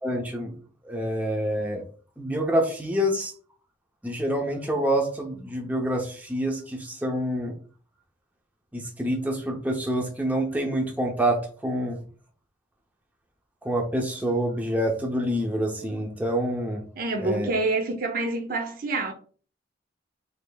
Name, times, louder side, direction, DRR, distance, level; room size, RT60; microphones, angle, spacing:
voice 1, 0.0-0.5 0.8-1.8 2.2-3.3 4.0-7.5 8.7-12.0 13.6-16.8 17.2-17.5, equal, 10° right, 0.5 m, -27 dB
voice 2, 17.0-19.1, right 2 dB, 45° right, 0.6 m, -27 dB
5.0 x 3.3 x 2.2 m
head